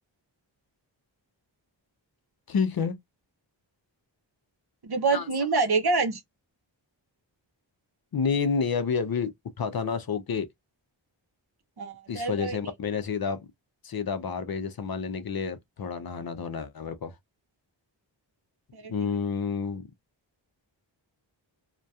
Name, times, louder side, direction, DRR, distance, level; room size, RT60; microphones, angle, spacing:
voice 1, 2.5-3.0 5.1-5.3 8.1-10.5 12.1-13.4 13.8-17.2 18.9-19.9, left 5 dB, 50° left, 0.5 m, -29 dB
voice 2, 4.8-6.2 11.8-12.6 18.7-18.9, right 4 dB, 55° right, 0.7 m, -26 dB
2.6 x 2.2 x 2.3 m
wide cardioid pair, 50°, 46 cm